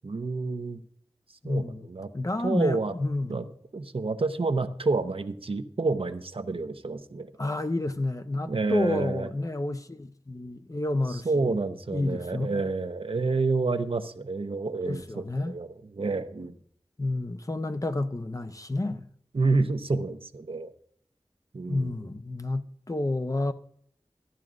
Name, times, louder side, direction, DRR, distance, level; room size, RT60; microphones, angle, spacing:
voice 1, 0.0-0.8 1.4-2.1 2.4-2.9 3.3-3.5 3.7-7.3 8.5-9.3 11.1-16.5 19.3-20.7 21.5-22.0, right 3 dB, 65° right, 0.7 m, -29 dB
voice 2, 1.4-1.9 2.1-3.4 7.4-11.5 11.9-12.5 14.8-15.6 17.0-19.1 21.7-23.5, left 2 dB, 35° left, 0.7 m, -30 dB
14.0 x 10.5 x 2.5 m
wide cardioid pair, 55°, 10 cm